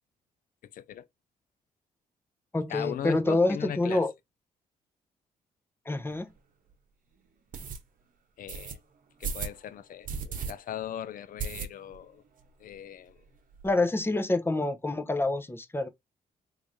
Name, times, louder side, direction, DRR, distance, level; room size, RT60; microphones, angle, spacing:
voice 1, 0.7-1.1 2.7-4.0 8.4-8.8 9.2-12.2 12.6-13.2, left 10 dB, 60° left, 0.4 m, -39 dB
voice 2, 2.5-4.1 5.9-6.3 13.6-15.9, left 2 dB, 15° left, 0.7 m, -27 dB
sound 1, 6.1-6.2 6.7-6.8 7.5-7.8 8.5-8.7 9.2-9.6 10.0-10.5 10.8-10.9 11.4-12.0 12.4-12.5 12.7-12.8 13.1-13.7, right 6 dB, 60° right, 0.9 m, -35 dB
3.5 x 3.2 x 2.6 m
supercardioid pair, 60°, 16 cm